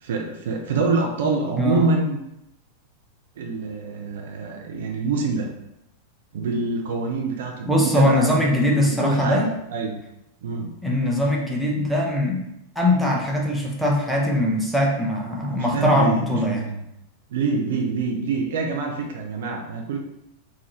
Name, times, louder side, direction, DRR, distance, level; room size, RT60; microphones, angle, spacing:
voice 1, 0.0-2.2 3.4-5.5 6.3-8.4 8.7-9.4 9.7-10.0 10.4-10.7 15.5-16.8 17.3-20.0, right 4 dB, 60° right, 2 dB, 0.5 m, -26 dB
voice 2, 7.7-9.5 10.8-12.4 12.8-16.7, left 1 dB, ahead, -3 dB, 0.8 m, -21 dB
3.7 x 2.4 x 3.3 m, 0.83 s
figure-of-eight pair, 90°, 0 cm